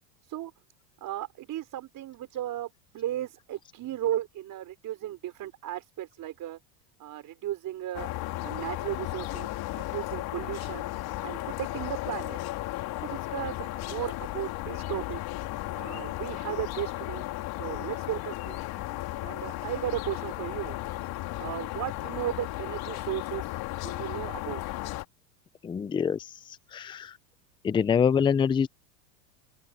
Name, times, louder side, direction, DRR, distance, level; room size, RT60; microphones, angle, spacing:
voice 1, 1.0-6.6 7.0-8.1 8.4-9.5 9.7-10.9 11.2-12.4 13.0-15.2 15.7-17.2 17.6-18.6 19.2-20.8 21.4-23.5 23.8-24.6, right 13 dB, 40° right, 4.4 m, -35 dB
sound 1, 7.9-25.0, left 17 dB, 45° left, 2.9 m, -35 dB
voice 2, 25.6-26.3 26.7-27.2 27.6-28.7, left 7 dB, 10° left, 0.5 m, -25 dB
open air
supercardioid pair, 110°, 49 cm